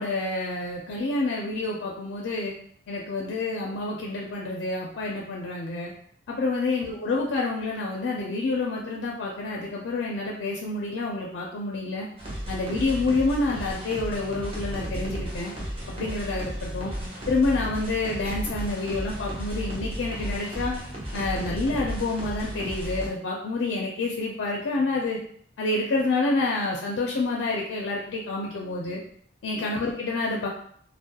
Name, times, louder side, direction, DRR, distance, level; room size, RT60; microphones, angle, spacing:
voice 1, 0.0-2.5 2.9-5.9 6.3-12.1 12.5-15.5 15.9-16.9 17.3-20.8 21.1-25.2 25.6-29.0 29.4-30.5, left 3 dB, 90° left, -2 dB, 0.4 m, -28 dB
sound 1, 12.2-23.1, equal, 30° right, 0.5 m, -34 dB
2.2 x 2.0 x 2.7 m, 0.63 s
head